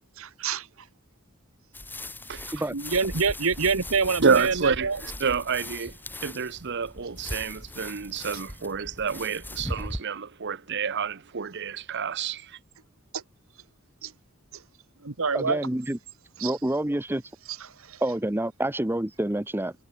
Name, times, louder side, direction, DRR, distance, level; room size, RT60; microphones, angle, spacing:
voice 1, 0.2-0.7 2.7-5.0 13.1-13.2 14.0-14.1 15.0-15.6 16.4-16.5 17.9-18.0, right 5 dB, 75° right, 1.4 m, -26 dB
sound 1, 1.7-10.0, left 1 dB, 10° left, 5.3 m, -39 dB
voice 2, 4.2-5.9 6.2-12.6, right 5 dB, 55° right, 0.9 m, -28 dB
voice 3, 15.3-16.0 16.4-17.2 18.0-19.7, right 1 dB, 10° right, 0.8 m, -27 dB
head